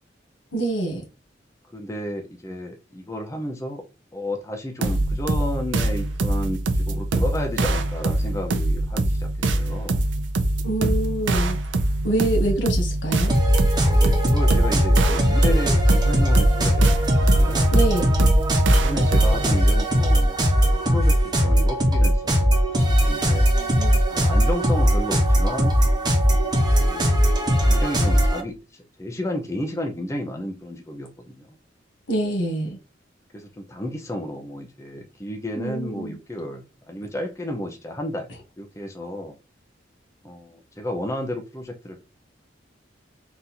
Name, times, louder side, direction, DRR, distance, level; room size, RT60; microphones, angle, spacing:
voice 1, 0.5-1.0 10.6-11.6 12.0-13.3 17.7-18.1 23.5-24.2 32.1-32.8 35.5-36.2, right 2 dB, 80° left, 1.6 m, -26 dB
voice 2, 1.7-3.8 4.1-10.1 13.8-17.7 18.8-20.3 20.6-22.6 22.8-23.5 24.1-25.8 26.8-27.2 27.6-28.6 29.0-31.5 33.3-38.3 38.6-39.3 40.2-42.0, left 1 dB, 15° left, 0.6 m, -32 dB
sound 1, 4.8-19.6, right 2 dB, 85° right, 0.6 m, -24 dB
sound 2, 13.3-28.4, equal, 25° right, 0.9 m, -19 dB
4.0 x 2.6 x 4.2 m
head